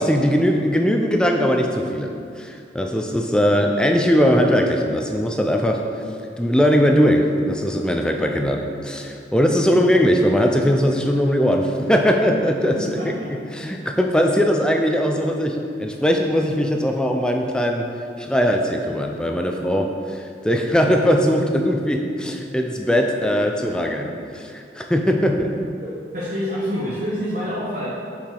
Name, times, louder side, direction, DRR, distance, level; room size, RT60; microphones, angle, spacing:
voice 1, 0.0-5.8 6.4-13.0 13.5-17.9 18.2-25.5, equal, 5° left, 3 dB, 0.4 m, -20 dB
voice 2, 12.9-13.2 25.8-27.9, equal, 45° right, -9 dB, 1.1 m, -27 dB
7.1 x 4.9 x 3.8 m, 2.4 s
head